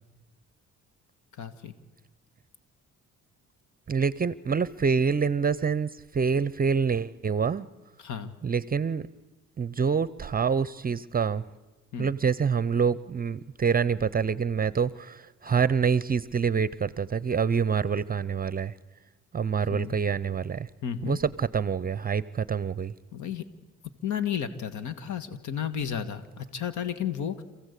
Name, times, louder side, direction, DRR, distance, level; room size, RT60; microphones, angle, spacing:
voice 1, 1.4-1.7 8.0-8.3 11.9-12.1 19.7-20.0 20.8-21.2 23.1-23.4 24.0-27.4, left 8 dB, 75° left, 11 dB, 1.6 m, -32 dB
voice 2, 3.9-7.7 8.4-9.0 9.6-11.4 12.0-18.7 19.3-20.7 21.1-22.9, right 6 dB, 30° right, 18 dB, 0.7 m, -26 dB
27.5 x 16.0 x 8.3 m, 1.3 s
cardioid pair, 90°, 30 cm